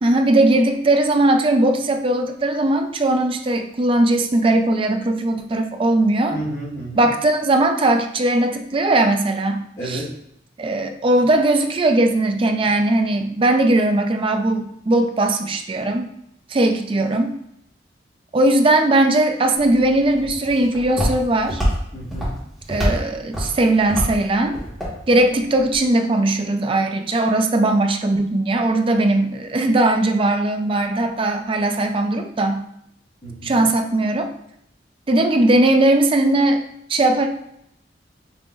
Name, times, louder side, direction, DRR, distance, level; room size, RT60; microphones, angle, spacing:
voice 1, 0.0-6.4 6.9-10.0 10.6-16.1 16.5-17.3 18.3-21.6 22.7-24.6 25.1-32.6 33.4-34.3 35.1-36.6 36.9-37.3, right 2 dB, 30° right, 5 dB, 0.4 m, -19 dB
voice 2, 6.3-7.1 9.8-10.1 21.9-22.3 33.2-33.6, right 1 dB, 40° left, -14 dB, 1.7 m, -31 dB
Walk footsteps, 19.6-25.8, equal, ahead, 1.5 m, -27 dB
5.9 x 2.9 x 2.4 m, 0.75 s
head